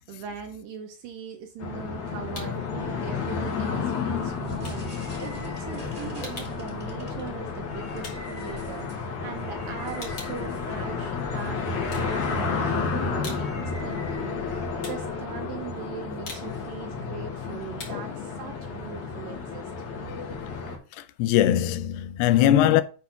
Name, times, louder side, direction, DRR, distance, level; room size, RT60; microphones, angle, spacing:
voice 1, 0.0-19.7, right 7 dB, 75° right, 2.2 m, -40 dB
sound 1, 1.5-2.7 3.1-9.3 9.6-11.4 11.8-12.6 13.0-19.7, left 3 dB, 35° left, 2.4 m, -46 dB
sound 2, 1.6-20.8, left 5 dB, 55° left, 2.7 m, -31 dB
sound 3, 4.3-14.9, right 1 dB, 10° right, 2.5 m, -46 dB
voice 2, 21.0-22.8, left 12 dB, 85° left, 2.7 m, -21 dB
8.6 x 4.1 x 5.7 m
omnidirectional pair, 4.7 m